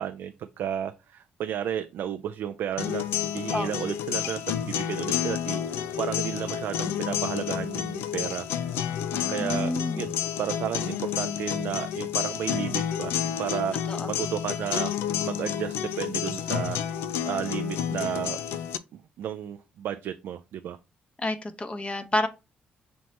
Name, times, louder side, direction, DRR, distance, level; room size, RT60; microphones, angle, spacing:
voice 1, 0.0-3.0 3.3-8.5 9.3-10.1 10.4-14.9 15.2-16.8 17.2-18.4 18.9-20.8, right 10 dB, 75° right, 0.4 m, -33 dB
sound 1, 2.8-18.8, left 9 dB, 85° left, 0.3 m, -30 dB
voice 2, 9.1-10.0 13.9-14.1 21.2-22.3, left 1 dB, 30° left, 0.9 m, -29 dB
6.1 x 2.1 x 4.1 m
supercardioid pair, 55°, 4 cm